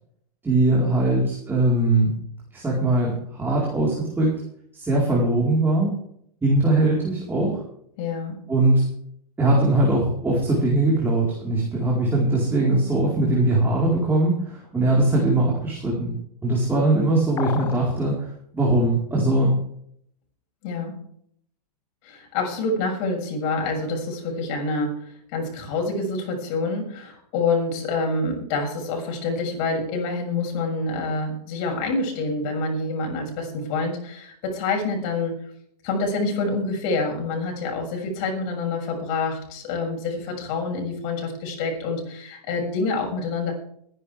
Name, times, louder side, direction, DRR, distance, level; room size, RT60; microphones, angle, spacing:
voice 1, 0.4-2.1 2.5-4.3 4.7-5.9 6.4-7.6 8.5-8.9 9.4-16.2 16.4-19.6, right 2 dB, 10° right, -4 dB, 4.5 m, -21 dB
voice 2, 8.0-8.4 20.6-21.0 22.0-35.4 35.8-43.5, left 3 dB, 45° left, 1 dB, 7.0 m, -27 dB
sound 1, 17.4-17.9, left 9 dB, 15° left, 0.6 m, -32 dB
21.5 x 11.0 x 3.6 m, 0.67 s
hypercardioid pair, 135°, 21 cm